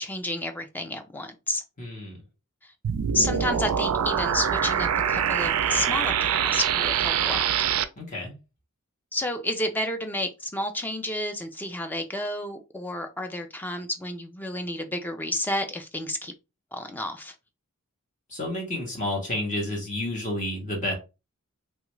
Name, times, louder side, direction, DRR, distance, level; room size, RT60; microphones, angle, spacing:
voice 1, 0.0-1.6 3.1-7.7 9.1-16.3 16.7-17.3, left 1 dB, 10° left, 0.3 m, -30 dB
voice 2, 1.8-2.2 8.0-8.3 18.3-20.9, left 1 dB, 35° left, 0.9 m, -30 dB
sound 1, 2.8-7.8, right 8 dB, 75° right, 0.3 m, -24 dB
3.1 x 2.4 x 3.0 m
head